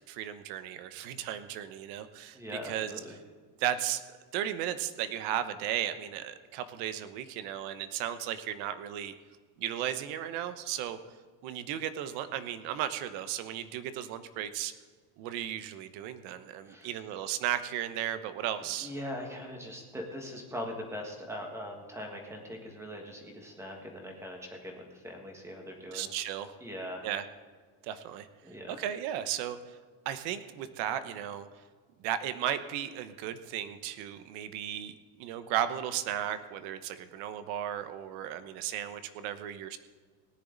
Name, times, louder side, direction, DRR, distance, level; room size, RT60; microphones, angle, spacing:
voice 1, 0.1-2.4 2.6-2.9 3.6-4.0 4.3-9.1 9.6-11.0 11.4-14.7 15.2-18.9 25.9-26.5 27.0-27.2 27.8-28.3 28.7-29.8 30.0-31.5 32.0-39.8, right 11 dB, 85° right, 11 dB, 1.1 m, -35 dB
voice 2, 2.3-3.2 16.6-16.9 18.8-26.1 26.6-27.1 28.4-28.8, equal, 5° right, 2 dB, 1.7 m, -41 dB
18.0 x 10.5 x 4.0 m, 1.6 s
cardioid pair, 175°, 40 cm